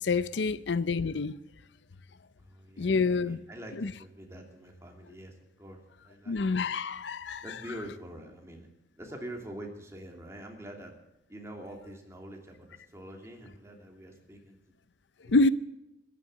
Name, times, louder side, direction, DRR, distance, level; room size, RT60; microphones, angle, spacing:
voice 1, 0.0-1.3 2.8-3.4 3.8-3.9 6.3-7.4 15.3-15.5, left 3 dB, 75° left, 0.6 m, -27 dB
voice 2, 2.4-6.6 7.4-8.7 9.0-11.0 11.3-14.7 15.3-15.5, right 1 dB, 15° right, 2.6 m, -45 dB
15.0 x 11.0 x 7.6 m
head